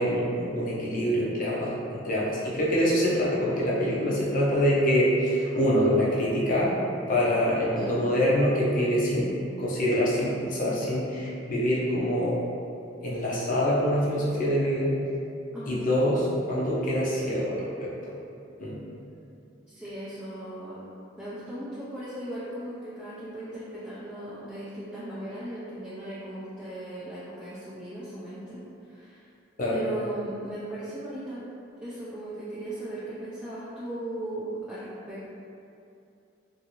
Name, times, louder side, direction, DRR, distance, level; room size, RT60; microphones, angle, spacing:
voice 1, 0.0-6.7 7.1-12.4 13.0-14.9 15.7-18.1 18.6-18.8 29.6-29.8, equal, 50° left, -6 dB, 0.7 m, -25 dB
voice 2, 7.6-8.1 15.5-15.9 19.7-20.8 21.2-29.3 29.7-31.4 31.7-35.4, right 1 dB, 5° right, -11 dB, 0.4 m, -37 dB
2.6 x 2.6 x 2.9 m, 2.7 s
head